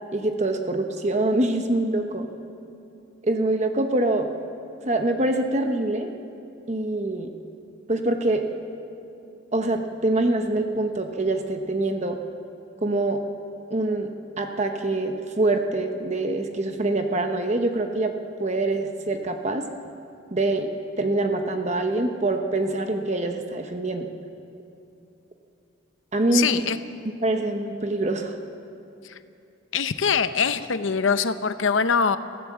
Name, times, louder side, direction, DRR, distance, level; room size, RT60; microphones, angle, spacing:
voice 1, 0.1-2.3 3.2-4.3 4.8-6.1 6.7-7.3 7.9-8.4 9.5-12.2 12.8-13.2 13.7-14.1 14.4-18.1 18.4-19.6 20.3-20.7 21.0-24.1 26.1-26.6 27.2-28.3, right 2 dB, 35° right, 5 dB, 1.0 m, -24 dB
voice 2, 26.3-26.8 29.7-32.2, left 6 dB, 75° left, 11 dB, 0.8 m, -23 dB
26.0 x 15.5 x 7.5 m, 2.7 s
head